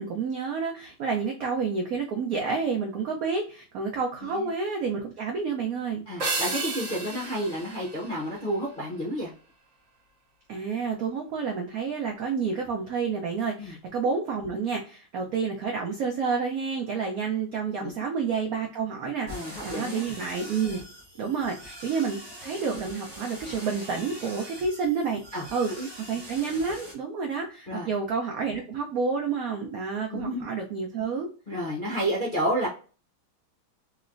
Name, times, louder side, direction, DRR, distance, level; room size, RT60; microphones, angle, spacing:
voice 1, 0.0-6.0 10.5-20.8 21.2-25.2 25.5-25.7 26.0-31.3, right 5 dB, 85° right, 1 dB, 0.8 m, -29 dB
voice 2, 6.1-9.3 13.6-13.7 17.8-17.9 19.3-20.0 25.3-25.9 27.7-27.9 30.1-30.4 31.5-32.7, equal, 50° left, -4 dB, 0.6 m, -30 dB
sound 1, 6.2-8.8, right 3 dB, 50° right, 1.2 m, -33 dB
sound 2, 19.3-26.9, equal, 25° right, 0.5 m, -43 dB
3.2 x 2.9 x 2.4 m, 0.38 s
omnidirectional pair, 2.2 m